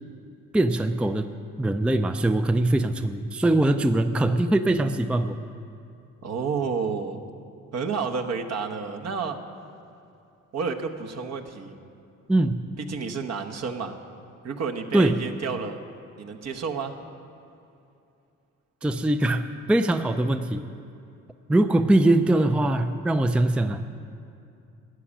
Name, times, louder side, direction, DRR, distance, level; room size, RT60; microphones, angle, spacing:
voice 1, 0.5-1.3 1.6-5.4 12.3-12.7 14.9-15.2 18.8-20.7 21.5-23.8, right 1 dB, 5° right, 9 dB, 0.4 m, -22 dB
voice 2, 6.2-7.2 7.7-9.4 10.5-11.8 12.8-14.0 14.4-15.8 16.2-16.9, right 5 dB, 60° right, 4 dB, 1.1 m, -30 dB
13.0 x 7.2 x 10.0 m, 2.6 s
cardioid pair, 90°, 30 cm